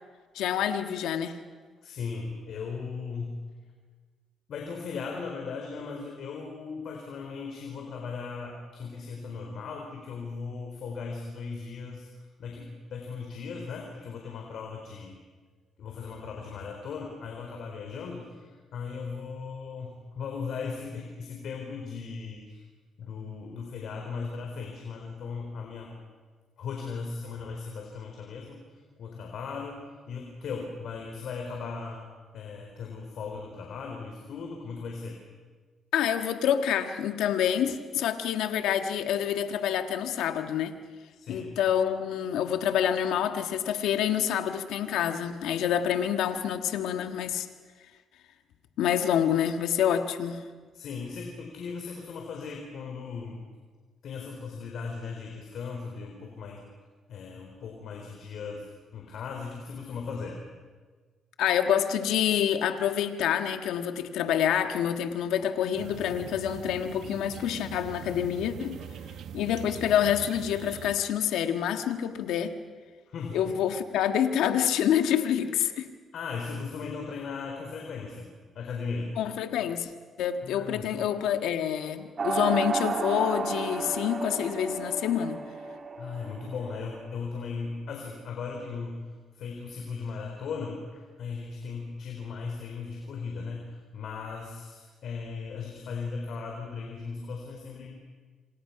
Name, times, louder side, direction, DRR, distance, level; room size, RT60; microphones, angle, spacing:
voice 1, 0.3-1.4 35.9-40.7 41.3-47.5 48.8-50.4 61.4-68.8 69.3-72.5 73.3-75.9 79.2-79.9 80.2-85.4, left 9 dB, 90° left, 7 dB, 1.6 m, -27 dB
voice 2, 1.8-3.4 4.5-15.2 15.8-22.6 23.0-25.9 26.6-28.6 29.0-29.8 30.1-32.0 32.3-35.2 41.1-41.5 50.7-53.4 54.0-56.6 57.1-58.7 58.9-60.4 73.1-73.4 76.1-78.3 78.5-79.1 80.4-80.9 86.0-89.0 89.3-98.1, left 5 dB, 70° left, 1 dB, 4.2 m, -37 dB
sound 1, 65.7-71.0, right 8 dB, 75° right, 1.3 m, -42 dB
sound 2, 82.2-87.2, right 4 dB, 40° right, 1.6 m, -33 dB
27.5 x 26.5 x 5.9 m, 1.5 s
cardioid pair, 90°, 0 cm